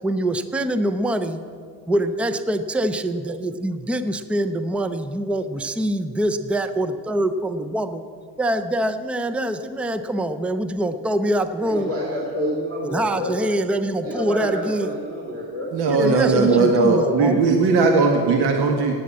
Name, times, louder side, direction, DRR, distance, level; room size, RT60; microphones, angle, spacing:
voice 1, 0.0-1.4 1.9-8.0 8.4-11.9 12.9-14.9 15.9-17.4, right 1 dB, 5° right, 10 dB, 0.4 m, -24 dB
voice 2, 11.6-13.3 14.0-15.7 16.3-16.7, equal, 35° right, -3 dB, 2.9 m, -28 dB
voice 3, 15.7-18.9, right 4 dB, 70° right, 3 dB, 1.7 m, -18 dB
16.0 x 9.3 x 8.5 m, 2.3 s
cardioid pair, 165°, 40 cm